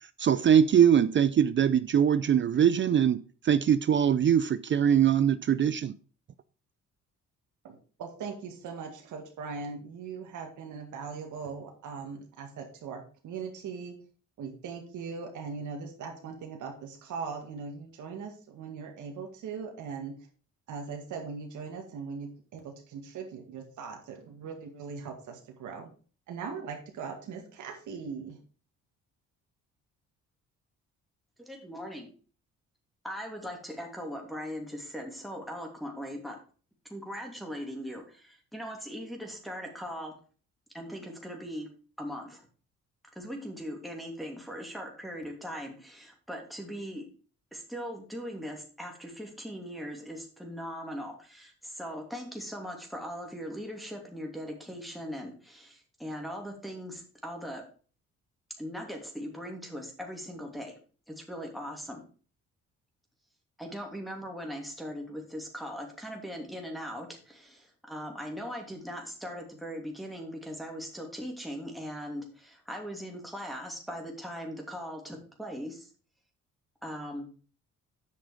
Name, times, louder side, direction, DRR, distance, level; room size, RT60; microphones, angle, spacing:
voice 1, 0.2-5.9, right 8 dB, 40° right, 0.5 m, -22 dB
voice 2, 7.6-14.0 14.4-20.1 20.7-25.9 26.3-28.4, right 5 dB, 80° right, 2.1 m, -40 dB
voice 3, 31.4-32.1 33.0-36.4 36.9-40.1 40.7-41.7 42.0-42.5 43.1-47.0 47.5-57.6 58.6-60.8 61.1-62.0 63.6-75.9 76.8-77.2, equal, ahead, 2.8 m, -40 dB
8.4 x 6.1 x 5.0 m
cardioid pair, 90°, 30 cm